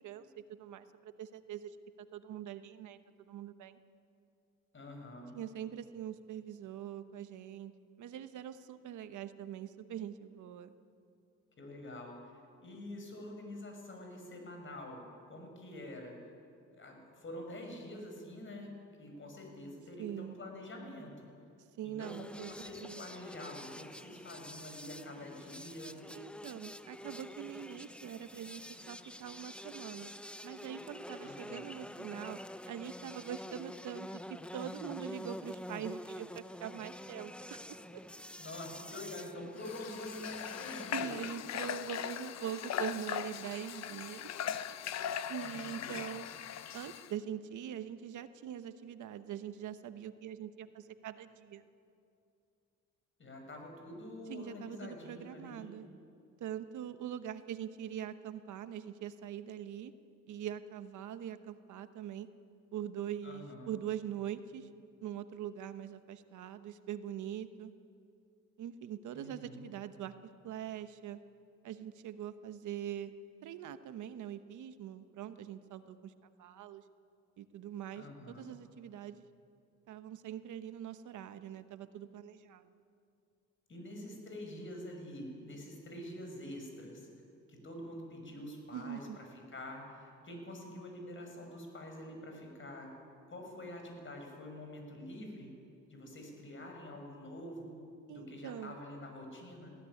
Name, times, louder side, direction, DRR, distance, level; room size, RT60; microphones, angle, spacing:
voice 1, 0.0-1.8 2.1-3.8 5.3-7.7 8.0-10.7 20.0-20.4 21.8-23.0 26.1-30.1 30.4-32.4 32.7-38.0 40.9-44.3 45.3-46.3 46.7-51.7 54.3-55.9 56.4-59.9 60.3-62.3 62.7-64.7 65.0-67.7 68.6-70.1 70.4-71.2 71.6-73.1 73.4-76.1 76.4-76.8 77.4-79.2 79.9-82.8 88.7-89.2 98.1-98.7, right 10 dB, 75° right, 11 dB, 1.1 m, -43 dB
voice 2, 4.7-5.3 11.6-12.3 12.6-15.0 15.3-16.2 16.7-18.7 19.0-21.3 21.8-26.0 31.2-31.7 38.4-41.1 45.4-46.0 53.2-55.8 63.2-63.7 69.1-69.6 78.0-78.5 83.7-87.1 87.5-92.9 93.3-95.6 95.9-97.8 98.1-99.8, left 1 dB, 40° left, 3 dB, 6.2 m, -46 dB
sound 1, 22.0-41.1, left 1 dB, 5° left, 0.7 m, -47 dB
Water / Water tap faucet, 39.6-47.1, left 9 dB, 60° left, 0.8 m, -40 dB
20.0 x 16.0 x 10.0 m, 2.5 s
cardioid pair, 90°, 30 cm